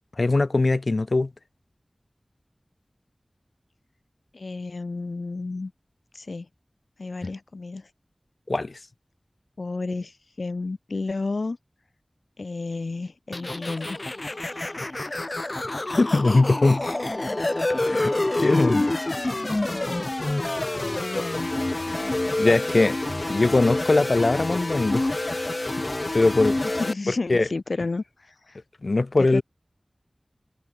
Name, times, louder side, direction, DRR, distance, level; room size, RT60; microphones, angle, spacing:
voice 1, 0.2-1.3 8.5-8.8 15.6-17.0 17.8-18.8 22.4-23.0 23.3-25.4 26.1-26.6 27.3-27.5 28.8-29.4, left 3 dB, 70° left, 3.9 m, -21 dB
voice 2, 4.3-5.7 6.1-6.5 7.0-7.9 9.6-11.6 12.4-14.0 18.3-18.9 19.2-19.8 20.8-21.5 21.9-22.4 26.6-28.6 29.2-29.4, left 3 dB, 85° left, 2.4 m, -32 dB
sound 1, 13.3-26.9, left 2 dB, 45° left, 1.6 m, -27 dB
Guitar, 13.6-19.1, left 1 dB, 20° left, 6.1 m, -41 dB
wide cardioid pair, 50°, 0 cm